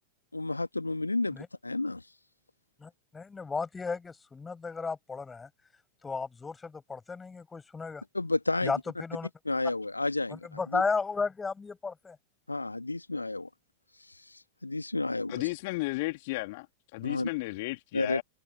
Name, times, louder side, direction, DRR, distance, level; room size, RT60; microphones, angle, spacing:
voice 1, 0.3-2.1 8.1-8.7 9.4-10.8 12.5-13.5 14.0-15.5 17.0-17.3 17.9-18.2, left 2 dB, 85° left, 1.4 m, -31 dB
voice 2, 2.8-5.5 6.0-8.0 8.6-9.3 10.3-12.2, left 4 dB, 15° left, 6.2 m, -34 dB
voice 3, 15.3-16.7 16.9-18.2, left 23 dB, 50° left, 2.6 m, -33 dB
figure-of-eight pair, 90°, 0 cm